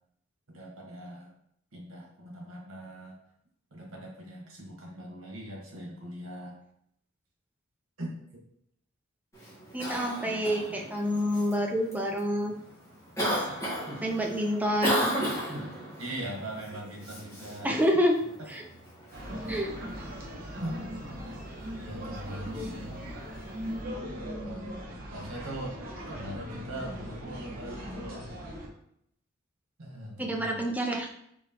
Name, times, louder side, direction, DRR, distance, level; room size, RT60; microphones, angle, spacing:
voice 1, 0.5-1.3 1.7-3.2 3.7-6.6 8.0-8.1 16.0-17.7 20.6-20.8 21.8-23.0 24.4-24.7 25.1-25.8 26.1-28.3 29.8-30.6, right 1 dB, 80° right, -1 dB, 1.3 m, -40 dB
Cough, 9.3-23.8, equal, 15° left, 1.3 m, -37 dB
voice 2, 9.7-12.5 13.2-13.4 14.0-15.1 17.6-18.2 18.5-18.6 19.5-19.7 30.2-31.1, equal, 10° right, 1 dB, 0.5 m, -28 dB
sound 1, 19.1-28.7, equal, 50° right, 1.0 m, -39 dB
4.5 x 3.1 x 2.9 m, 0.73 s
head